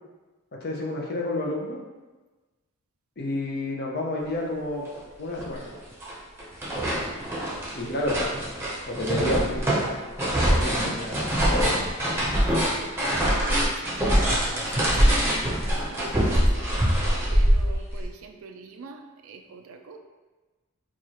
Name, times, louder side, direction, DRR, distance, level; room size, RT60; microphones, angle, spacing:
voice 1, 0.6-1.8 3.2-4.9 5.2-5.7 7.8-8.2 8.9-10.0 10.5-11.8, left 1 dB, 45° left, -2 dB, 0.6 m, -30 dB
sound 1, 4.9-5.0 5.4-6.1 6.4-18.1, equal, 10° right, 0.8 m, -24 dB
voice 2, 12.4-15.3 15.6-16.5 17.3-20.0, right 4 dB, 65° right, 5 dB, 0.4 m, -44 dB
4.6 x 2.4 x 2.9 m, 1.2 s
head